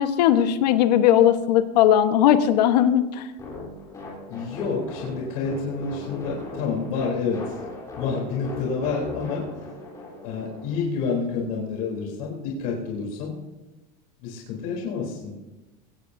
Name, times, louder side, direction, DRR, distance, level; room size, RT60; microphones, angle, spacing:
voice 1, 0.0-3.3, left 10 dB, 75° left, 8 dB, 1.2 m, -18 dB
sound 1, 3.4-10.8, left 3 dB, 15° left, 3.6 m, -38 dB
voice 2, 4.3-7.6 8.0-9.5 10.2-13.4 14.2-15.3, left 5 dB, 60° left, -3 dB, 3.5 m, -28 dB
22.0 x 17.5 x 2.7 m, 1.1 s
supercardioid pair, 175°, 21 cm